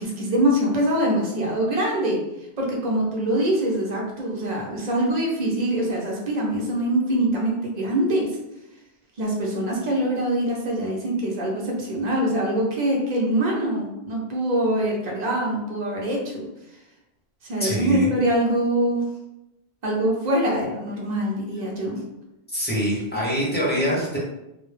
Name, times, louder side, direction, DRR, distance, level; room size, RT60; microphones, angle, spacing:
voice 1, 0.0-2.2 2.6-8.4 9.2-16.5 17.4-19.1 19.8-22.0, right 1 dB, 50° right, -2 dB, 0.7 m, -24 dB
voice 2, 17.6-18.1 22.5-24.2, equal, 15° left, -6 dB, 0.5 m, -24 dB
2.2 x 2.0 x 3.1 m, 0.91 s
omnidirectional pair, 1.1 m